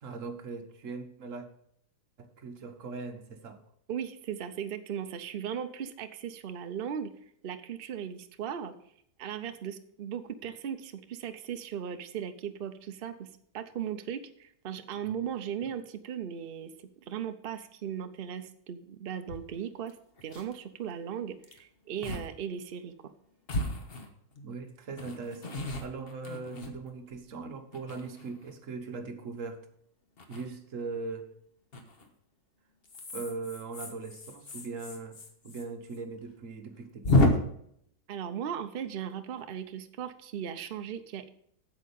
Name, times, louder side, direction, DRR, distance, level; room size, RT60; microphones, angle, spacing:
voice 1, 0.0-1.5 2.2-3.6 15.6-15.7 24.4-29.7 30.3-31.3 33.1-35.2 35.4-37.4, right 4 dB, 50° right, 6 dB, 1.3 m, -40 dB
voice 2, 3.9-7.1 7.4-8.7 9.2-13.3 13.5-16.7 17.0-20.0 20.2-22.9 38.1-41.3, right 8 dB, 80° right, 9 dB, 0.5 m, -37 dB
sound 1, 19.3-19.4 19.9-20.0 20.2-20.5 21.4-21.6 22.0-22.3 22.6-22.7 23.5-24.4 25.0-27.2 27.7-28.5 30.2-30.4 31.7-32.1 32.8-35.6 35.9-36.0 36.3-36.4 37.0-37.3, left 2 dB, 35° left, 1.2 m, -31 dB
8.4 x 7.6 x 5.2 m, 0.69 s
omnidirectional pair, 1.9 m